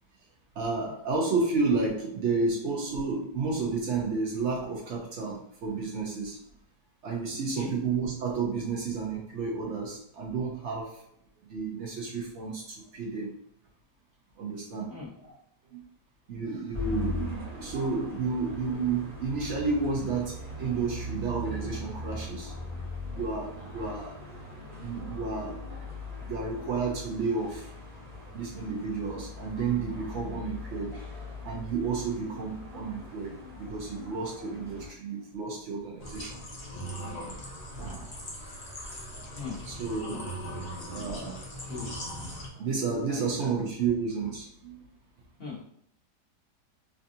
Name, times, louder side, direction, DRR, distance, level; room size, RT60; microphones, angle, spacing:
voice 1, 0.6-6.4 7.0-11.0 11.5-12.6 12.9-13.3 14.4-14.9 15.7-15.8 16.3-22.5 23.1-24.2 24.8-25.6 26.2-27.7 28.3-36.4 37.7-38.2 39.1-39.3 39.7-40.3 40.9-41.4 42.5-44.8, right 4 dB, 75° right, -2 dB, 0.6 m, -31 dB
sound 1, 16.7-34.9, left 2 dB, 35° right, 1.0 m, -40 dB
bath tub water drainage, 36.0-42.5, equal, 85° left, 0.3 m, -39 dB
voice 2, 41.6-42.0 43.1-43.5 45.4-45.6, left 4 dB, 40° left, -6 dB, 1.2 m, -39 dB
3.4 x 2.4 x 2.7 m, 0.68 s
omnidirectional pair, 1.8 m